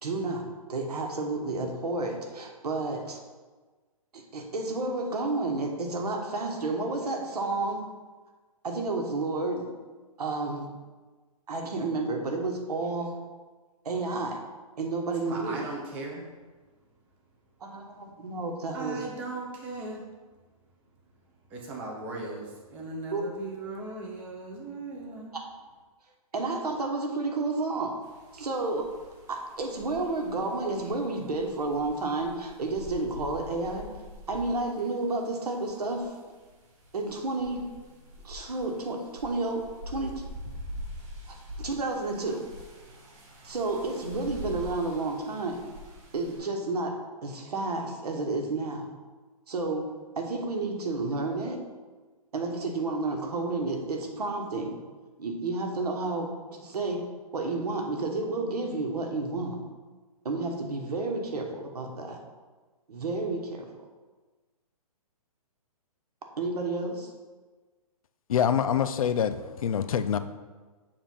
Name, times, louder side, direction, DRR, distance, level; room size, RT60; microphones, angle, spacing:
voice 1, 0.0-3.2 4.1-7.8 8.6-9.7 10.2-10.7 11.5-13.1 13.8-14.4 14.8-15.6 17.6-19.0 23.1-23.2 26.3-27.9 28.3-28.9 29.3-33.9 34.3-36.1 36.9-37.6 38.2-40.1 41.3-42.4 43.4-45.6 46.1-48.9 49.5-49.8 50.2-51.6 52.3-54.8 55.2-56.3 56.6-57.0 57.3-59.6 60.2-62.2 62.9-63.7 66.4-67.1, right 3 dB, 90° right, 1.2 m, -31 dB
voice 2, 15.1-16.4 18.7-20.1 21.2-25.4, right 2 dB, 10° right, 0.4 m, -38 dB
sound 1, 28.0-46.4, left 1 dB, 50° right, 1.9 m, -45 dB
voice 3, 68.3-70.2, left 8 dB, 65° left, 0.4 m, -25 dB
7.0 x 2.6 x 5.6 m
hypercardioid pair, 165°, 19 cm